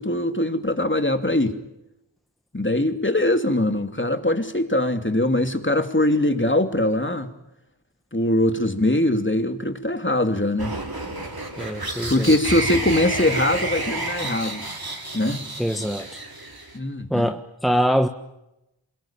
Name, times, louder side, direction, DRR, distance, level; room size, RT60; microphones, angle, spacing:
voice 1, 0.0-1.6 2.5-7.3 8.1-10.7 12.1-14.7 15.1-15.4 16.7-17.3, left 1 dB, 25° left, 2.9 m, -22 dB
sound 1, 10.6-16.8, right 2 dB, 50° right, 4.4 m, -30 dB
voice 2, 11.6-12.3 15.6-16.1 17.1-18.1, equal, ahead, 1.4 m, -23 dB
27.0 x 22.5 x 9.0 m
wide cardioid pair, 40°, 46 cm